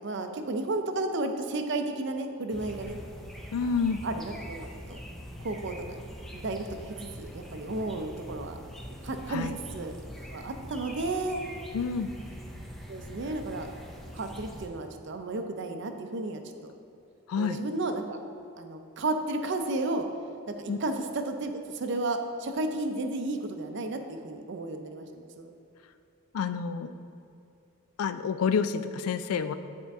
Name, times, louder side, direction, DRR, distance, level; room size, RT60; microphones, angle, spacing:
voice 1, 0.0-3.0 3.6-5.0 5.4-6.0 6.3-8.6 9.0-10.0 10.3-11.4 12.9-13.7 14.1-16.7 17.4-18.2 18.6-20.1 20.6-25.5, right 2 dB, 55° right, 6 dB, 0.5 m, -33 dB
sound 1, 2.5-14.7, equal, ahead, 0.4 m, -43 dB
voice 2, 3.5-4.0 9.3-9.6 11.7-12.2 17.3-17.6 20.7-20.8 26.3-26.9 28.0-29.5, left 6 dB, 85° left, 11 dB, 0.3 m, -28 dB
9.0 x 4.4 x 3.5 m, 2.5 s
head